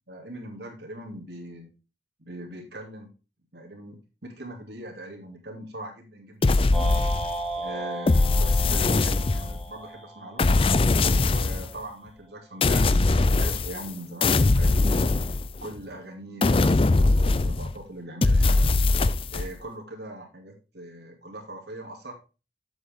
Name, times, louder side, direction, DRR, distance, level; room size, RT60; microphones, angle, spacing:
voice 1, 0.1-1.7 2.2-3.1 3.5-6.9 7.6-10.5 11.2-14.9 15.6-18.7 19.3-22.1, right 1 dB, 75° right, 0 dB, 2.6 m, -41 dB
sound 1, 6.4-7.5 8.1-9.7 10.4-11.7 12.6-13.9 14.2-15.8 16.4-17.8 18.2-19.5, left 3 dB, 30° left, 0.4 m, -21 dB
sound 2, 6.7-11.0, right 1 dB, ahead, 2.1 m, -35 dB
7.9 x 7.8 x 3.5 m, 0.32 s
head